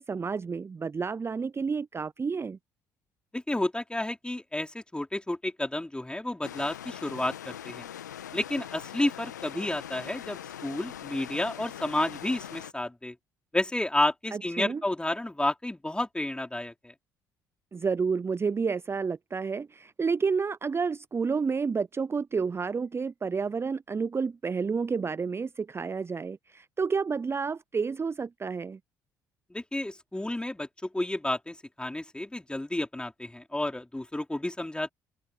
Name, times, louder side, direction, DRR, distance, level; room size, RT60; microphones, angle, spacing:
voice 1, 0.0-2.6 14.3-14.8 17.7-28.8, right 5 dB, 25° right, 0.6 m, -30 dB
voice 2, 3.3-7.9 8.3-13.2 13.5-16.9 29.5-34.9, left 1 dB, 10° left, 4.2 m, -31 dB
sound 1, 6.4-12.7, left 10 dB, 85° left, 1.7 m, -42 dB
open air
figure-of-eight pair, 50°, 9 cm